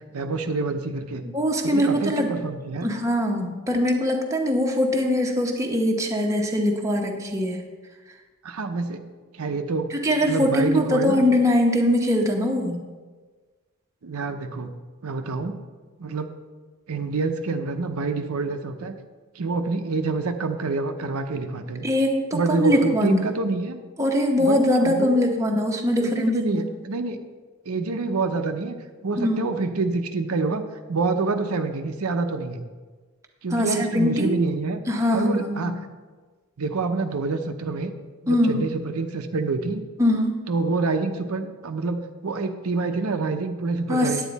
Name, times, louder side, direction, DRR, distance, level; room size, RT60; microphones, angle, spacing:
voice 1, 0.1-1.3 1.6-2.9 8.4-9.0 9.3-9.9 10.2-11.3 14.0-14.7 15.0-15.6 16.0-16.3 16.9-18.9 19.4-21.9 22.3-23.8 24.4-25.2 26.0-27.2 27.7-28.8 29.0-32.6 33.4-34.8 35.1-35.7 36.6-37.9 38.2-39.8 40.5-44.2, right 3 dB, 85° right, 6 dB, 0.7 m, -27 dB
voice 2, 1.3-2.3 2.8-7.6 9.9-12.8 21.8-23.2 24.0-26.6 29.2-29.5 33.5-34.5 34.9-35.7 38.3-38.6 40.0-40.4 43.9-44.1, left 1 dB, 15° right, 1 dB, 1.0 m, -22 dB
9.1 x 8.9 x 4.1 m, 1.4 s
head